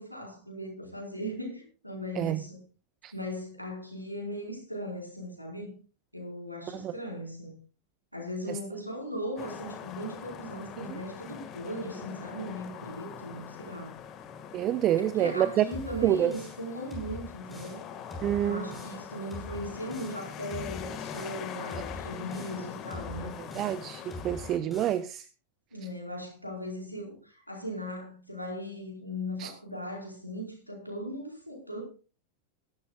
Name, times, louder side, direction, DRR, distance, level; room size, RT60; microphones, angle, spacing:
voice 1, 0.0-2.6 3.1-5.7 6.1-7.6 8.1-14.0 15.0-17.8 18.4-23.3 25.7-31.8, equal, 90° right, 4.7 m, -38 dB
sound 1, 9.4-24.6, left 8 dB, 35° left, 1.8 m, -43 dB
voice 2, 14.5-15.6 16.0-16.3 18.2-18.7 23.4-25.2 29.4-29.5, right 11 dB, 35° right, 0.6 m, -27 dB
sound 2, 15.7-16.6 16.9-17.8 18.1-19.0 19.3-20.2 20.5-21.4 21.7-22.6 22.9-23.8 24.1-25.0, left 1 dB, ahead, 5.7 m, -43 dB
18.0 x 12.0 x 2.4 m
figure-of-eight pair, 90°, 0 cm